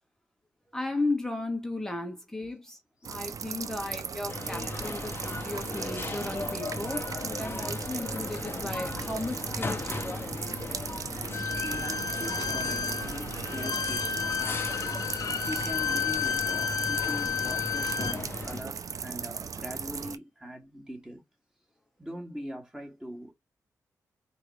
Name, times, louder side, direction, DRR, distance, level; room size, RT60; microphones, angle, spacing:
voice 1, 0.7-10.5, left 2 dB, 5° left, 1.5 m, -35 dB
sound 1, 3.0-20.2, right 6 dB, 60° right, 0.6 m, -38 dB
sound 2, 4.3-18.6, left 2 dB, 35° left, 1.2 m, -37 dB
Bowed string instrument, 11.3-18.2, left 6 dB, 65° left, 0.6 m, -32 dB
voice 2, 11.4-14.6 15.5-21.2 22.0-23.3, equal, 10° right, 2.4 m, -42 dB
4.6 x 3.0 x 3.2 m
cardioid pair, 60°, 6 cm